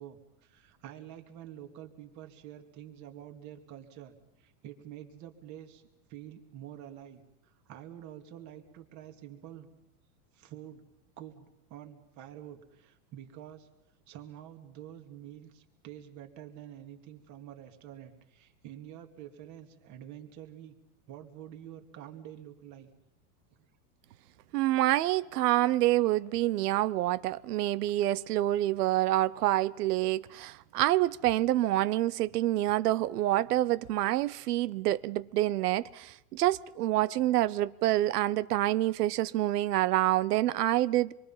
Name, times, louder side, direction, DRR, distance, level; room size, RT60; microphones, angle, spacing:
voice 1, 0.0-9.7 10.3-10.8 11.2-13.7 14.1-20.8 21.1-22.9, right 11 dB, 40° right, 2.5 m, -48 dB
voice 2, 24.5-41.1, right 15 dB, 90° right, 0.9 m, -27 dB
26.0 x 23.0 x 5.8 m
supercardioid pair, 145°, 45 cm